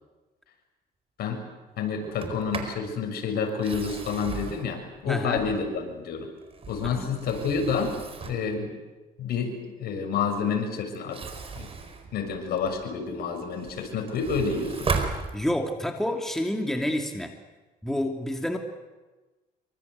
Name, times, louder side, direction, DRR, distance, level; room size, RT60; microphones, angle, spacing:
voice 1, 1.8-6.3 6.7-8.0 8.2-8.7 9.2-11.2 11.5-11.7 12.1-15.0, left 5 dB, 70° left, 4 dB, 6.7 m, -29 dB
Sliding door, 2.0-2.8 3.5-5.8 6.4-8.5 10.9-12.9 13.3-15.8, right 4 dB, 35° right, 4.7 m, -36 dB
voice 2, 5.1-5.5 6.8-7.1 15.3-17.3 17.8-18.6, left 1 dB, ahead, 3 dB, 2.7 m, -29 dB
26.5 x 25.0 x 8.3 m, 1.2 s
cardioid pair, 110°, 17 cm